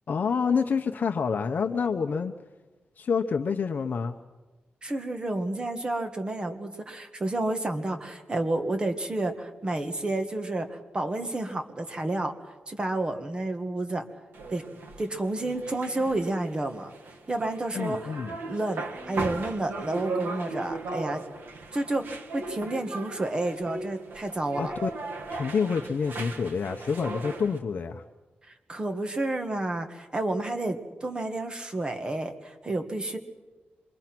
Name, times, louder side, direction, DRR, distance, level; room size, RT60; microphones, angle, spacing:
voice 1, 0.1-2.3 3.0-4.2 17.7-18.4 24.6-24.9 25.3-28.0, left 5 dB, 50° left, 5 dB, 0.8 m, -27 dB
voice 2, 4.8-12.3 12.7-14.0 14.5-14.6 15.0-16.9 17.3-18.1 18.5-21.2 21.7-24.7 28.7-33.2, right 2 dB, 25° right, 6 dB, 1.6 m, -30 dB
sound 1, 14.3-27.6, right 3 dB, 70° right, 1.8 m, -37 dB
27.0 x 22.5 x 6.0 m, 1.2 s
wide cardioid pair, 145°, 4 cm